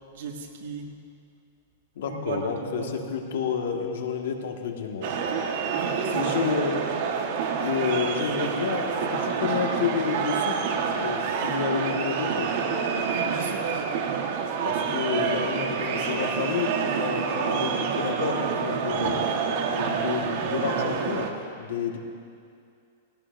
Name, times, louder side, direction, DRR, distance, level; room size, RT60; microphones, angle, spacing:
voice 1, 0.1-1.0 2.1-3.1 5.7-6.3 13.1-14.3, right 5 dB, 70° right, 2 dB, 1.8 m, -36 dB
voice 2, 1.9-5.2 6.1-6.8 7.6-10.5 10.9-12.5 14.6-19.2 19.7-21.3 21.6-22.0, left 6 dB, 75° left, 3 dB, 1.6 m, -30 dB
sound 1, 5.0-21.3, right 6 dB, 55° right, 1.4 m, -27 dB
20.0 x 17.0 x 2.6 m, 2.4 s
supercardioid pair, 150°, 0 cm